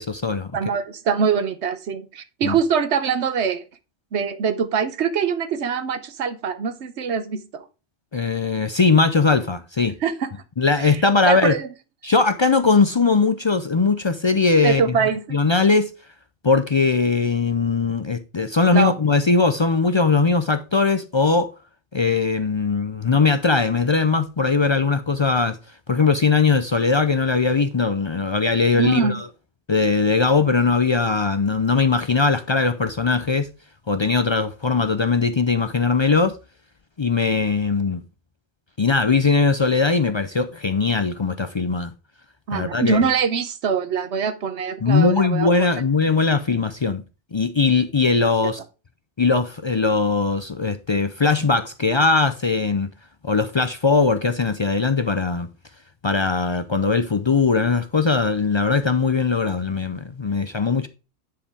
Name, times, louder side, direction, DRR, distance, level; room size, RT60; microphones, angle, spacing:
voice 1, 0.0-0.5 2.4-2.5 8.1-9.9 10.6-11.6 12.0-14.8 15.3-15.9 16.4-21.5 21.9-25.6 25.9-29.2 29.7-33.5 33.9-36.3 37.0-38.0 38.8-41.9 42.5-43.1 44.8-47.0 47.3-48.6 49.2-52.9 53.2-55.5 56.0-60.9, left 4 dB, 45° left, 0.4 m, -20 dB
voice 2, 0.5-3.6 4.1-7.7 10.0-10.3 10.8-11.7 14.6-15.2 18.7-18.9 28.7-29.2 42.5-45.5, right 6 dB, 80° right, 1.2 m, -23 dB
10.0 x 4.9 x 3.5 m
omnidirectional pair, 1.1 m